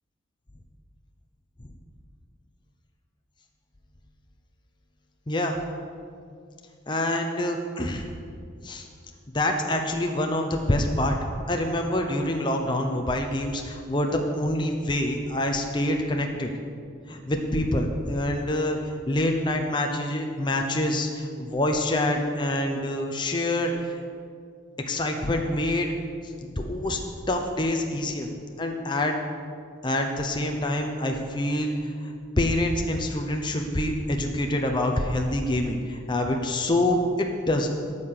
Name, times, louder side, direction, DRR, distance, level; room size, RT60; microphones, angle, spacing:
voice 1, 6.9-8.0 8.6-8.8 9.3-11.2 11.5-16.5 17.1-18.8 19.1-23.7 24.9-25.9 26.6-27.0 27.3-28.3 28.6-29.2 29.8-31.8 32.4-37.7, left 1 dB, 20° left, 3 dB, 0.8 m, -26 dB
14.0 x 5.7 x 6.7 m, 2.3 s
head